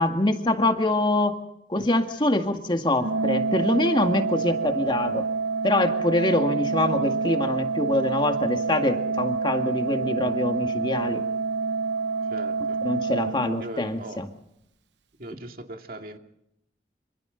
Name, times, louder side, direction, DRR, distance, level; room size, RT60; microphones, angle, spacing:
voice 1, 0.0-1.4 1.7-5.3 5.6-11.2 12.8-14.3, left 1 dB, 25° left, 2.0 m, -24 dB
Organ, 3.0-14.0, right 4 dB, 85° right, 0.7 m, -27 dB
voice 2, 12.3-12.8 13.6-14.3 15.2-16.2, right 1 dB, 55° right, 2.3 m, -39 dB
27.0 x 26.5 x 4.0 m
head